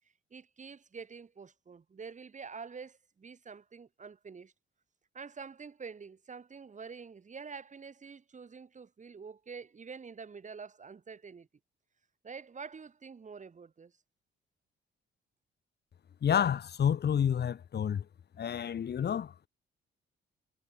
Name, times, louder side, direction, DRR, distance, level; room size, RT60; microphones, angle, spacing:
voice 1, 0.3-4.5 5.1-11.5 12.2-13.9, right 5 dB, 40° right, 6.7 m, -47 dB
voice 2, 16.2-18.0 18.4-19.5, left 8 dB, 55° left, 4.1 m, -29 dB
cardioid pair, 90°, 20 cm